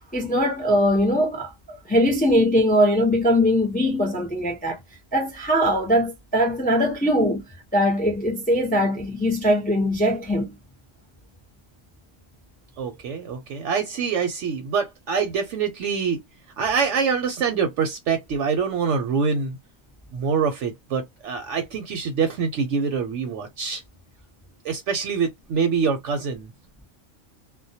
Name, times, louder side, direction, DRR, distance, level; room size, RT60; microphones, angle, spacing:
voice 1, 0.1-4.8 5.1-7.4 7.7-10.5, equal, 15° left, 0.3 m, -21 dB
voice 2, 12.8-16.2 16.6-19.6 20.1-23.8 24.6-26.5, right 6 dB, 70° right, 0.8 m, -25 dB
2.2 x 2.1 x 2.6 m
omnidirectional pair, 1.4 m